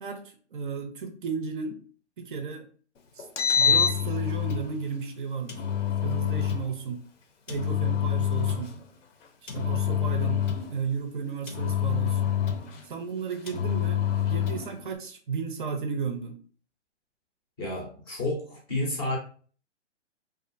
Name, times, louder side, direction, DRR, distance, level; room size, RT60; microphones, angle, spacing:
voice 1, 0.0-1.8 2.2-2.7 3.1-3.3 3.6-5.6 6.0-7.0 7.5-8.7 9.4-10.4 10.7-12.3 12.8-16.4, right 5 dB, 45° right, 6 dB, 0.4 m, -33 dB
Engine, 3.2-4.7 5.5-6.7 7.5-8.8 9.5-10.8 11.5-12.8 13.5-14.7, left 8 dB, 85° left, 0.7 m, -26 dB
voice 2, 17.6-19.2, left 1 dB, 20° left, -2 dB, 0.4 m, -30 dB
2.4 x 2.4 x 2.4 m, 0.44 s
hypercardioid pair, 145°, 36 cm